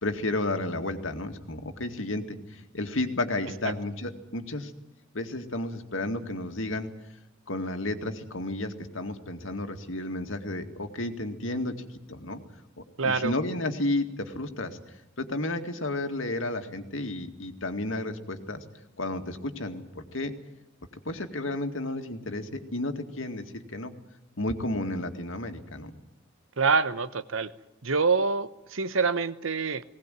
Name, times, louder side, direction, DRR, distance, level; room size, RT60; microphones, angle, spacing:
voice 1, 0.0-4.7 5.1-6.9 7.5-11.8 12.1-12.4 12.8-14.8 15.2-18.6 19.0-20.3 21.1-23.9 24.4-26.0, left 2 dB, 75° left, 6 dB, 2.2 m, -32 dB
voice 2, 13.0-13.3 26.6-27.5 27.8-29.8, right 4 dB, 80° right, 14 dB, 1.1 m, -26 dB
20.0 x 18.5 x 9.2 m, 0.92 s
head